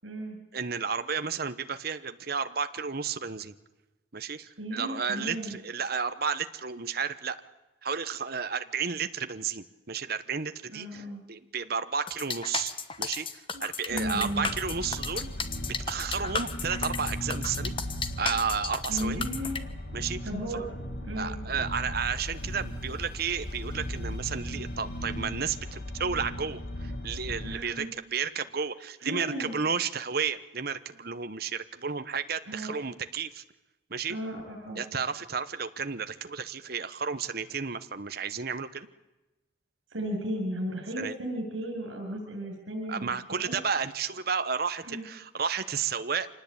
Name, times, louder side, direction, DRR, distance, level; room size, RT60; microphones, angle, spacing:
voice 1, 0.0-0.4 4.6-5.6 10.7-11.2 13.5-13.6 13.9-14.5 18.9-19.6 20.2-20.7 21.0-21.4 27.4-27.9 29.0-29.5 32.5-32.7 34.1-34.8 39.9-43.1 43.4-43.6 44.8-45.0, equal, 75° right, 0 dB, 7.1 m, -35 dB
voice 2, 0.5-3.5 4.1-7.4 7.8-12.7 13.0-15.3 15.9-17.7 18.2-19.2 19.9-20.2 20.5-20.7 21.2-33.4 33.9-34.1 34.8-38.9 41.0-41.1 42.9-46.3, right 6 dB, 50° right, 11 dB, 1.0 m, -32 dB
sound 1, 12.1-19.6, left 5 dB, 25° left, 1.2 m, -34 dB
sound 2, 13.9-27.6, equal, 50° left, 2.8 m, -37 dB
26.0 x 19.0 x 8.7 m, 1.1 s
head